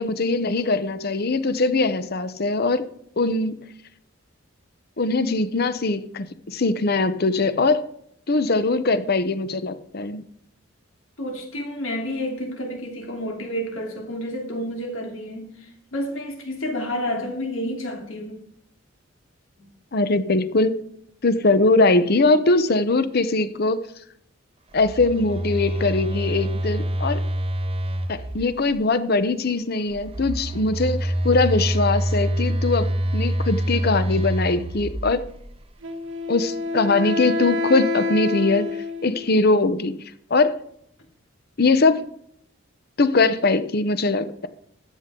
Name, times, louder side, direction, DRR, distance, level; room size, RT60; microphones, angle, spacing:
voice 1, 0.0-2.8 3.2-3.6 5.0-7.8 8.3-10.2 19.9-20.9 21.2-23.8 24.7-27.2 28.1-35.2 36.3-38.7 39.0-40.0 40.3-40.6 41.6-42.0 43.0-44.5, left 3 dB, 50° left, 0.8 m, -21 dB
voice 2, 11.2-18.4, equal, 85° left, 3.2 m, -30 dB
Telephone, 24.7-28.7 29.9-35.6, right 1 dB, 30° right, 0.7 m, -26 dB
Wind instrument woodwind instrument, 35.8-39.4, left 3 dB, 75° right, 1.3 m, -27 dB
13.5 x 8.3 x 3.8 m
head